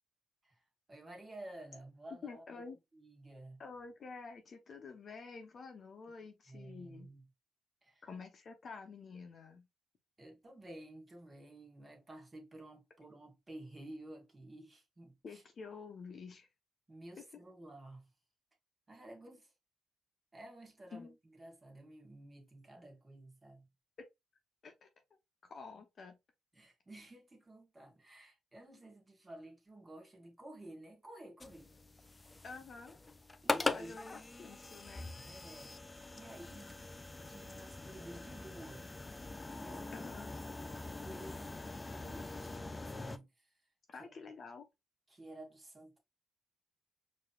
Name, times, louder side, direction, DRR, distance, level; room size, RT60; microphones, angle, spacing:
voice 1, 0.9-2.6 2.9-3.6 6.5-7.3 7.8-8.1 10.2-15.4 16.9-18.1 18.9-19.5 20.3-21.1 21.4-23.7 26.5-31.7 31.9-32.2 33.4-34.0 35.3-35.8 36.1-36.8 37.2-38.9 39.5-40.1 40.6-41.5 41.9-43.5 44.0-44.1 45.1-46.0, right 1 dB, 25° right, 1.7 m, -52 dB
voice 2, 2.2-2.8 3.6-7.1 8.0-9.7 15.2-16.5 20.9-21.1 24.6-24.9 25.4-26.2 32.4-33.0 33.7-35.1 39.9-40.3 43.9-44.6, left 4 dB, 45° left, 0.9 m, -49 dB
sound 1, 31.4-43.2, left 3 dB, 20° left, 0.3 m, -42 dB
4.7 x 2.9 x 2.3 m
cardioid pair, 90°, 0 cm